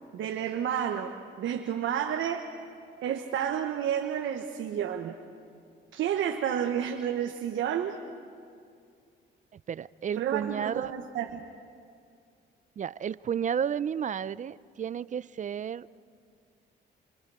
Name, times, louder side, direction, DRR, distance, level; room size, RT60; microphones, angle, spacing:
voice 1, 0.1-2.5 3.0-5.2 5.9-8.0 10.2-11.5, right 9 dB, 75° right, 3 dB, 1.3 m, -30 dB
voice 2, 9.5-10.9 12.8-15.9, right 8 dB, 40° right, 18 dB, 0.5 m, -32 dB
27.5 x 27.0 x 4.9 m, 2.3 s
cardioid pair, 90°, 20 cm